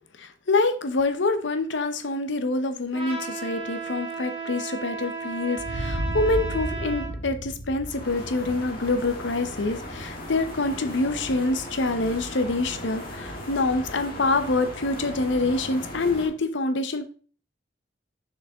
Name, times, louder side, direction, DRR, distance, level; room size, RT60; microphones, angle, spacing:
voice 1, 0.2-17.1, left 2 dB, 70° left, 9 dB, 0.8 m, -26 dB
Trumpet, 2.9-7.1, right 4 dB, 30° right, 2.0 m, -34 dB
sound 1, 5.6-10.2, equal, 85° left, 1.4 m, -33 dB
sound 2, 7.8-16.3, left 1 dB, 50° left, 1.6 m, -37 dB
6.4 x 4.9 x 3.6 m, 0.43 s
head